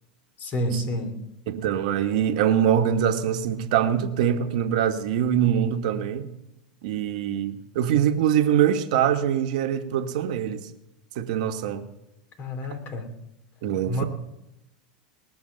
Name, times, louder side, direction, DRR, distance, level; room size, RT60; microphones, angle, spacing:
voice 1, 0.4-1.2 12.4-13.1 13.9-14.0, equal, 40° left, 2.7 m, -29 dB
voice 2, 1.5-6.3 6.8-10.7 11.1-11.9 13.6-14.0, right 9 dB, 65° right, 1.3 m, -23 dB
20.0 x 6.9 x 6.6 m
hypercardioid pair, 95°, 4 cm